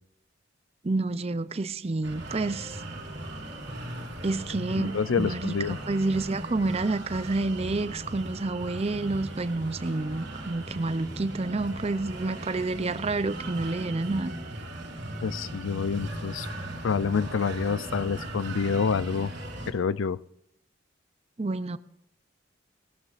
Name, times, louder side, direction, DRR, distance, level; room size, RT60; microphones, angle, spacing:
voice 1, 0.8-2.8 4.2-14.3 21.4-21.8, right 2 dB, 30° right, 14 dB, 0.5 m, -29 dB
sound 1, 2.0-19.7, right 1 dB, 55° right, 3.0 m, -38 dB
voice 2, 4.6-5.8 15.2-16.5 16.8-19.3 19.7-20.2, left 5 dB, 75° left, 18 dB, 0.5 m, -28 dB
18.5 x 14.5 x 2.5 m, 0.77 s
head